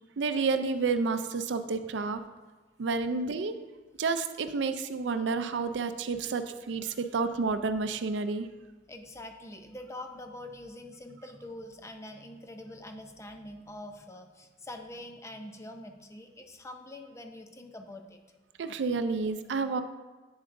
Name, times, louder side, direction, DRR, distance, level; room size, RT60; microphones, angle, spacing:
voice 1, 0.2-2.2 2.8-3.5 4.0-8.5 18.6-19.8, right 4 dB, 85° right, 10 dB, 0.4 m, -30 dB
voice 2, 8.9-18.2, left 1 dB, 15° left, 5 dB, 0.6 m, -44 dB
8.7 x 7.3 x 2.6 m, 1.2 s
head